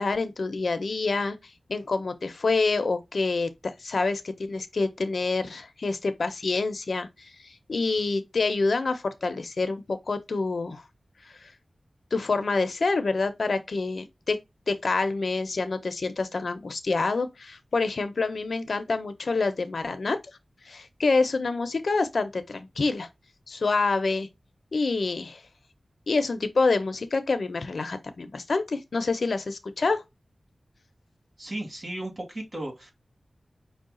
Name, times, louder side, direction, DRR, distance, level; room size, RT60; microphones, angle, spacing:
voice 1, 0.0-1.4 1.7-10.8 12.1-14.4 14.7-20.2 20.6-23.1 23.5-24.3 24.7-25.4 26.1-30.0, left 3 dB, 75° left, 0.7 m, -27 dB
voice 2, 31.4-32.9, right 1 dB, 55° right, 2.5 m, -35 dB
5.5 x 2.3 x 3.8 m
wide cardioid pair, 75°, 0 cm